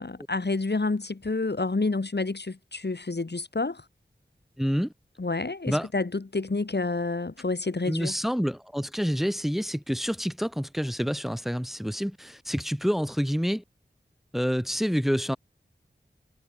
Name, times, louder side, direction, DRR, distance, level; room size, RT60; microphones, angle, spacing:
voice 1, 0.0-3.8 5.2-8.2, left 3 dB, 60° left, 4.2 m, -29 dB
voice 2, 4.6-4.9 5.7-5.9 7.9-13.6 14.3-15.4, equal, ahead, 4.6 m, -28 dB
wide cardioid pair, 55°, 19 cm